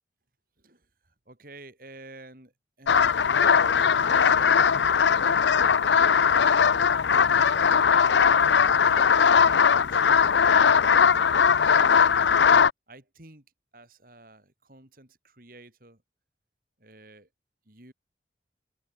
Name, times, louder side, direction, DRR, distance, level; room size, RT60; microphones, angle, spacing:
voice 1, 1.3-2.5 2.8-5.3 6.4-6.8 7.1-9.1 9.4-11.2 11.7-12.0 12.9-13.4 13.7-16.0 16.8-17.3 17.7-17.9, right 2 dB, 50° right, 4.8 m, -50 dB
sound 1, 2.9-12.7, left 6 dB, 85° left, 0.6 m, -20 dB
open air
head